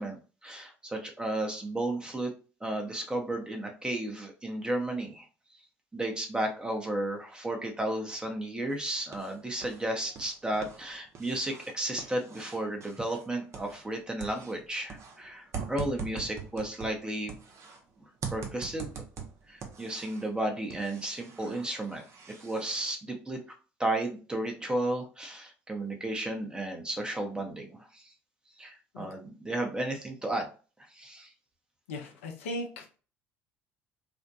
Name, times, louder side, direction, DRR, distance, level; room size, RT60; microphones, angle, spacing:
voice 1, 0.0-2.3 2.6-5.3 5.9-17.3 18.0-18.9 19.5-22.0 22.4-23.4 23.8-28.1 28.6-30.5 30.9-31.3, right 1 dB, 10° right, 3 dB, 0.8 m, -33 dB
sound 1, 8.7-9.8 10.1-13.9 14.2-17.8 18.2-20.3 20.7-22.8, right 6 dB, 45° right, 0.7 m, -43 dB
voice 2, 31.9-33.0, left 1 dB, 85° left, 2 dB, 0.6 m, -38 dB
2.5 x 2.1 x 2.6 m, 0.36 s
hypercardioid pair, 65°, 7 cm